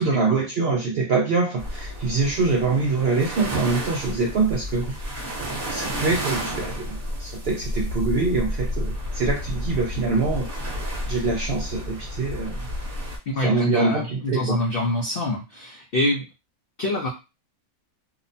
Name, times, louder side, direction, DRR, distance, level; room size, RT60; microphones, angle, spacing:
voice 1, 0.0-5.0 5.7-10.5 11.1-12.7 13.4-14.6, right 3 dB, 70° right, 0 dB, 0.6 m, -24 dB
sound 1, 1.6-13.2, equal, 45° right, 1.0 m, -31 dB
voice 2, 13.3-16.3 16.8-17.1, left 1 dB, 75° left, 1 dB, 0.5 m, -26 dB
2.8 x 2.1 x 2.6 m, 0.27 s
omnidirectional pair, 1.6 m